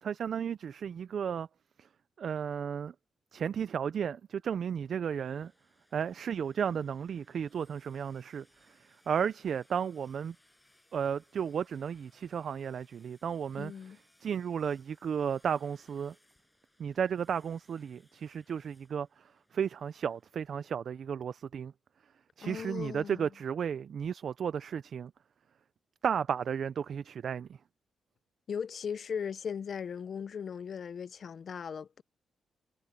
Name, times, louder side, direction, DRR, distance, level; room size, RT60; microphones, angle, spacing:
voice 1, 0.0-1.5 2.2-2.9 3.3-5.5 5.9-10.4 10.9-13.7 14.2-16.1 16.8-21.7 22.4-25.1 26.0-27.5, right 7 dB, 60° right, 0.4 m, -34 dB
sound 1, 4.8-20.7, left 1 dB, 10° left, 7.6 m, -68 dB
voice 2, 13.6-14.0 22.4-23.3 28.5-32.0, left 7 dB, 55° left, 0.5 m, -38 dB
cardioid pair, 105°, 0 cm